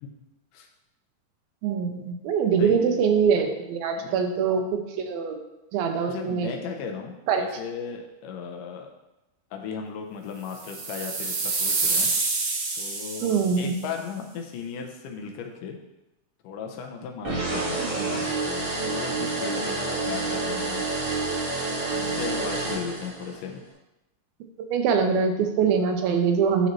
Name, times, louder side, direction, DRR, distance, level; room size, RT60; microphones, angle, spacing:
voice 1, 1.6-5.4 5.7-6.5 7.3-7.4 13.2-13.7 24.7-26.7, right 6 dB, 90° right, 5 dB, 2.6 m, -23 dB
voice 2, 2.6-3.0 4.0-4.5 6.1-8.9 9.5-12.1 12.8-15.8 16.4-20.9 21.9-23.6, left 6 dB, 75° left, 2 dB, 2.1 m, -36 dB
sound 1, 10.5-13.7, right 3 dB, 65° right, 1.7 m, -27 dB
sound 2, 17.2-23.4, right 3 dB, 35° right, 1.7 m, -28 dB
11.0 x 4.1 x 3.0 m, 0.96 s
omnidirectional pair, 4.1 m